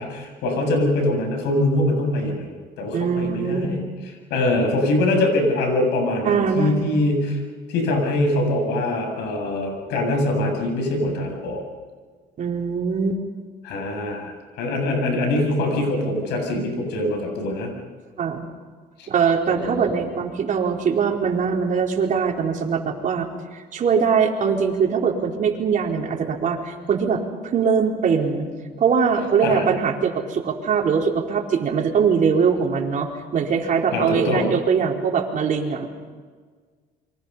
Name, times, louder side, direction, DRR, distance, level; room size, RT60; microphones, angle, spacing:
voice 1, 0.0-3.8 4.3-7.4 7.7-11.6 13.6-17.7 19.0-19.1 19.5-20.0 29.4-29.6 33.9-34.5, left 1 dB, 90° left, 3 dB, 7.7 m, -23 dB
voice 2, 2.9-3.7 6.2-6.8 12.4-13.2 18.2-18.5 19.1-28.5 28.8-35.9, right 6 dB, 50° right, 1 dB, 4.3 m, -22 dB
28.5 x 24.0 x 5.7 m, 1.5 s
cardioid pair, 110°, 17 cm